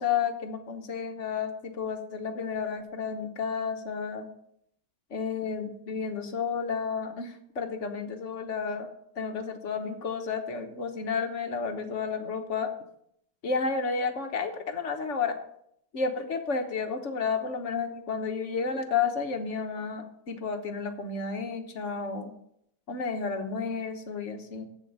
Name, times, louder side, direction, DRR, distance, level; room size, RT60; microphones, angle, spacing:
voice 1, 0.0-4.3 5.1-8.9 9.2-12.7 13.4-15.4 15.9-22.3 22.9-24.7, left 5 dB, 45° left, 6 dB, 1.2 m, -31 dB
7.9 x 7.4 x 6.7 m, 0.72 s
omnidirectional pair, 2.1 m